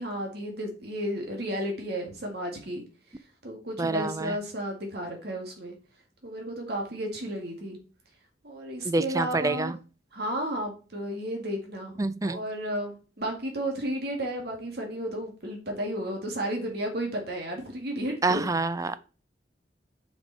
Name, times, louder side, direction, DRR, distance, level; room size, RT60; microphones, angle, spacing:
voice 1, 0.0-2.8 3.4-5.8 6.2-7.8 8.4-9.7 10.1-18.4, right 1 dB, 60° right, 2 dB, 1.9 m, -33 dB
voice 2, 3.8-4.4 8.8-9.8 12.0-12.4 18.2-19.0, right 3 dB, 20° right, 14 dB, 0.5 m, -27 dB
9.5 x 5.3 x 4.0 m, 0.36 s
head